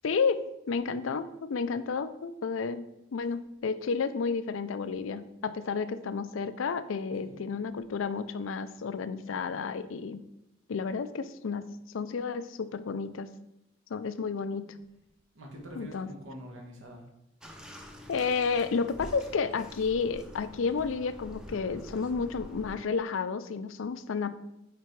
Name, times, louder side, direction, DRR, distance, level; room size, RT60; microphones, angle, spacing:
voice 1, 0.0-2.8 3.1-10.2 10.7-13.3 13.9-14.7 15.8-16.1 18.1-24.4, left 5 dB, 70° left, 12 dB, 0.4 m, -31 dB
voice 2, 15.3-17.1, equal, 70° right, 0 dB, 1.5 m, -45 dB
Bathtub (filling or washing), 17.4-22.8, equal, 5° right, 0.6 m, -46 dB
5.9 x 4.6 x 4.6 m, 0.85 s
head